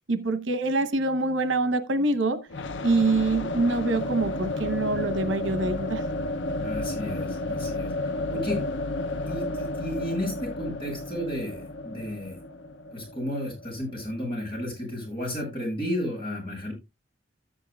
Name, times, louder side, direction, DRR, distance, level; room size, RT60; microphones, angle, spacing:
voice 1, 0.1-2.4 2.8-6.0 8.5-8.6, right 2 dB, 85° right, 0.9 m, -25 dB
sound 1, 2.5-14.3, left 2 dB, 70° left, 0.6 m, -32 dB
voice 2, 6.6-7.9 8.3-8.6 9.3-12.4 12.9-16.7, left 1 dB, 30° left, 7.6 m, -33 dB
13.5 x 9.8 x 2.3 m
head